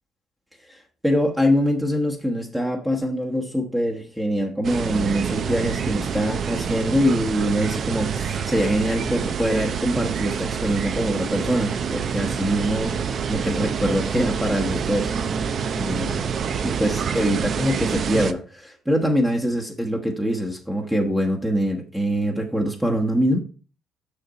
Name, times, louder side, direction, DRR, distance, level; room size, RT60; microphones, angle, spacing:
voice 1, 0.7-15.1 15.7-16.2 16.6-23.4, equal, 10° right, 0 dB, 1.1 m, -24 dB
sound 1, 4.6-18.3, right 6 dB, 50° right, 0.6 m, -27 dB
6.6 x 5.8 x 4.1 m, 0.37 s
cardioid pair, 90°, 0 cm